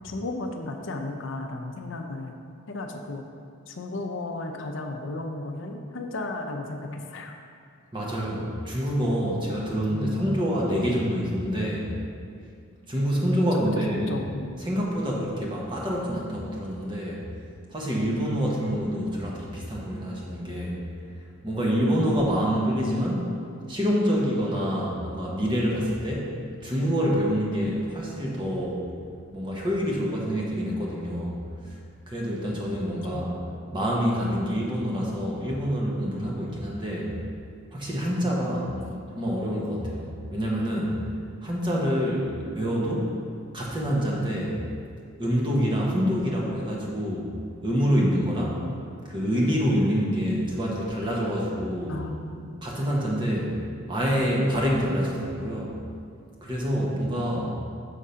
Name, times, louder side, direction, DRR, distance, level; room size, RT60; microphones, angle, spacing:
voice 1, 0.0-2.3 2.7-3.3 3.7-7.3 9.9-10.3 13.5-13.6 13.9-14.6 33.1-33.3 38.7-39.0 41.7-42.0 51.9-52.5 53.2-53.3 57.3-57.5, left 2 dB, 60° left, 4 dB, 0.5 m, -34 dB
voice 2, 7.9-11.9 12.9-14.2 14.6-17.2 17.7-20.8 21.4-23.2 23.7-26.3 26.6-28.9 29.3-31.4 31.6-31.8 32.1-33.4 33.7-37.1 37.7-38.7 39.1-41.0 41.4-43.1 43.5-44.6 45.2-47.3 47.6-48.7 49.1-52.0 52.6-53.5 53.9-55.7 56.4-57.5, equal, 20° right, -4 dB, 1.0 m, -26 dB
6.6 x 3.7 x 5.6 m, 2.3 s
head